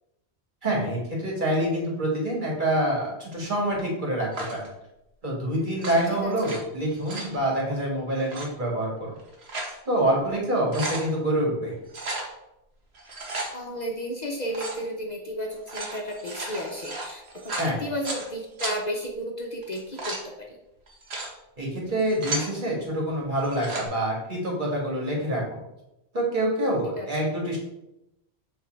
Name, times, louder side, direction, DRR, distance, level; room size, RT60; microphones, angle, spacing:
voice 1, 0.6-4.7 5.2-8.9 9.9-11.7 17.6-17.8 21.6-25.6 26.1-27.6, right 1 dB, 50° right, -3 dB, 2.2 m, -26 dB
sound 1, 4.3-4.7 5.7-6.6 6.9-7.4 8.2-8.5 9.2-9.8 10.2-10.3 10.5-11.1 11.9-12.3 13.0-13.5 14.5-14.8 15.5-18.3 18.6-18.7 19.6-20.2 20.9-21.3 21.9-22.5 23.4-23.9, right 2 dB, 75° right, 1.5 m, -34 dB
voice 2, 13.5-20.2 20.5-20.6 27.0-27.1, equal, 45° left, 1 dB, 0.8 m, -33 dB
7.2 x 3.5 x 4.5 m, 0.89 s
omnidirectional pair, 1.1 m